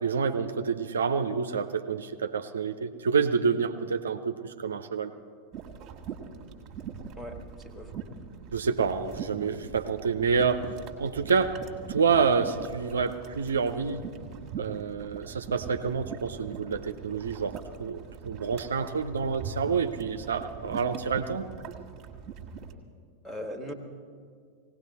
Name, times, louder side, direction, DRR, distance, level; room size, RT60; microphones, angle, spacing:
voice 1, 0.0-5.1 8.5-10.7 11.0-11.6 11.9-14.0 14.6-21.5, right 5 dB, 70° right, 8 dB, 0.6 m, -28 dB
sound 1, 5.5-22.7, right 6 dB, 35° right, 1.5 m, -42 dB
voice 2, 7.2-8.0 23.2-23.7, left 1 dB, 5° left, 4 dB, 1.7 m, -39 dB
19.0 x 17.0 x 4.2 m, 2.1 s
figure-of-eight pair, 90°, 0 cm